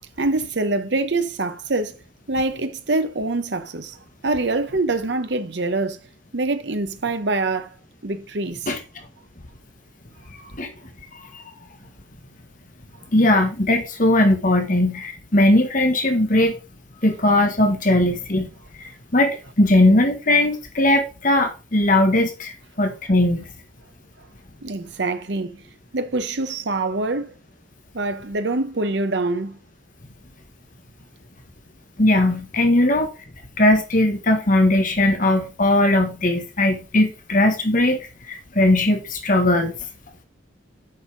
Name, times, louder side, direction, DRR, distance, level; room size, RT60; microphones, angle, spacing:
voice 1, 0.2-1.9 2.3-4.0 4.2-6.0 6.3-7.7 8.0-8.7 24.6-25.6 25.9-27.3 27.9-29.6, right 2 dB, 60° right, 0.9 m, -24 dB
voice 2, 13.1-16.6 17.0-18.5 19.1-22.5 22.8-23.4 32.0-33.1 33.6-39.7, left 1 dB, 45° left, 1.5 m, -19 dB
7.7 x 5.6 x 4.9 m
head